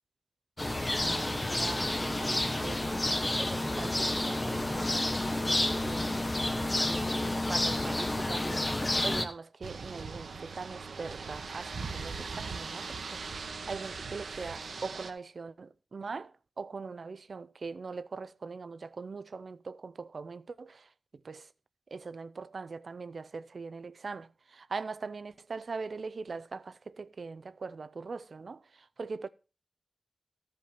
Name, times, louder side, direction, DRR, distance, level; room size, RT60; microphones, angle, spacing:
sound 1, 0.6-9.3, left 1 dB, 25° left, 1.1 m, -30 dB
voice 1, 1.0-6.3 6.9-20.9 21.2-21.5 21.9-29.3, right 4 dB, 60° right, 0.5 m, -42 dB
sound 2, 9.6-15.1, right 4 dB, 80° right, 1.1 m, -40 dB
13.5 x 5.4 x 5.7 m
wide cardioid pair, 110°, 0 cm